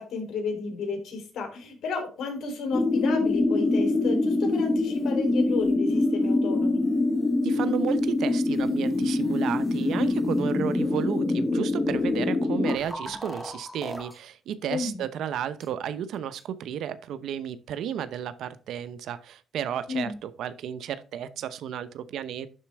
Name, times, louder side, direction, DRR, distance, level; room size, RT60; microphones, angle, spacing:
voice 1, 0.0-6.9 14.7-15.0 19.9-20.2, left 4 dB, 70° left, 3 dB, 3.5 m, -32 dB
sound 1, 2.7-12.8, left 2 dB, 20° left, 0.8 m, -24 dB
voice 2, 7.4-22.5, right 9 dB, 75° right, 13 dB, 0.8 m, -33 dB
sound 2, 12.6-14.2 14.9-15.0 15.6-15.7 16.4-16.5, equal, 5° right, 1.9 m, -38 dB
11.0 x 4.2 x 3.4 m, 0.35 s
cardioid pair, 90°, 0 cm